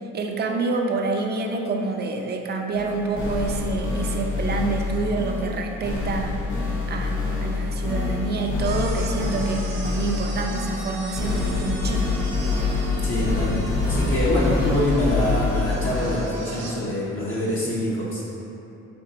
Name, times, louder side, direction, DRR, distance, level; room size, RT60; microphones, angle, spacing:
voice 1, 0.1-6.3 6.9-12.1, right 3 dB, 35° right, 2 dB, 0.5 m, -27 dB
sound 1, 2.7-16.4, left 3 dB, 85° left, 1.1 m, -26 dB
sound 2, 8.6-16.8, right 2 dB, 60° right, 0.8 m, -39 dB
voice 2, 12.9-18.3, left 1 dB, 45° left, -7 dB, 0.7 m, -25 dB
4.4 x 2.8 x 3.8 m, 3.0 s
cardioid pair, 90°, 30 cm